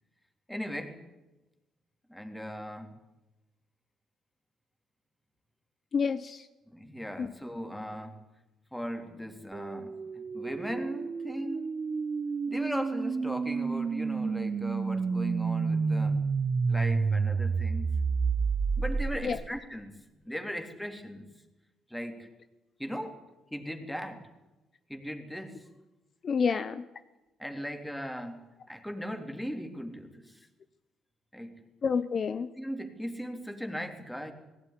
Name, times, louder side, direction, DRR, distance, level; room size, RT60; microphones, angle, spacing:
voice 1, 0.5-1.0 2.1-3.0 6.7-8.2 8.7-11.7 12.5-16.2 16.7-18.0 18.8-20.0 20.2-21.3 21.9-22.3 22.8-23.2 23.5-24.3 24.9-25.7 26.5-26.6 27.4-30.4 31.3-31.7 32.6-34.3, equal, 5° left, 5 dB, 3.3 m, -38 dB
voice 2, 5.9-6.5 7.2-7.3 19.2-19.4 26.2-26.8 31.8-32.5, left 6 dB, 50° left, 11 dB, 0.9 m, -28 dB
sound 1, 9.5-19.6, right 5 dB, 40° right, 0.9 m, -30 dB
19.0 x 16.5 x 10.0 m, 1.1 s
cardioid pair, 90°, 0 cm